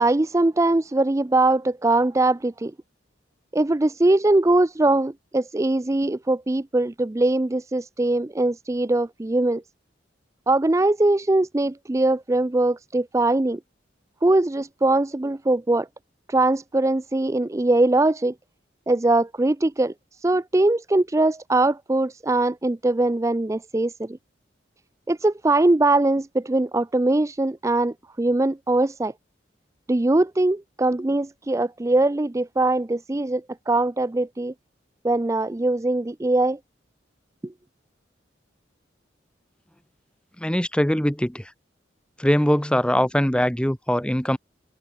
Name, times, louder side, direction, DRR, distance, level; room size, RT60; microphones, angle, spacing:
voice 1, 0.0-2.7 3.5-9.6 10.5-13.6 14.2-15.9 16.3-18.3 18.9-24.2 25.1-29.1 29.9-34.5 35.0-36.6 37.4-37.5, right 2 dB, 15° right, 0.4 m, -21 dB
voice 2, 40.4-41.5 42.2-44.4, equal, 5° left, 1.2 m, -22 dB
head